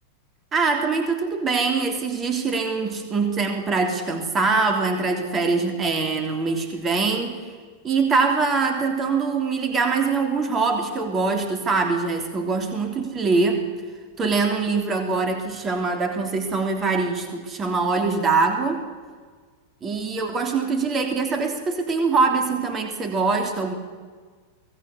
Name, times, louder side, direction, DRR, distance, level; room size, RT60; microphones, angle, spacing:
voice 1, 0.5-7.4 7.8-13.6 14.2-18.8 19.8-23.7, right 4 dB, 25° right, 4 dB, 3.3 m, -23 dB
24.0 x 18.0 x 8.5 m, 1.5 s
figure-of-eight pair, 90°, 0 cm